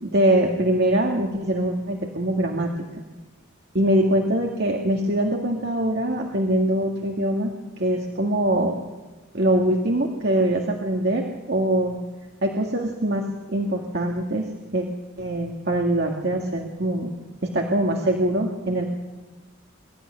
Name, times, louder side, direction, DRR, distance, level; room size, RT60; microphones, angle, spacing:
voice 1, 0.0-2.7 3.7-8.8 9.3-12.0 12.4-14.9 15.2-17.1 17.4-18.8, right 1 dB, 55° right, 1 dB, 2.0 m, -23 dB
23.5 x 14.0 x 9.8 m, 1.2 s
head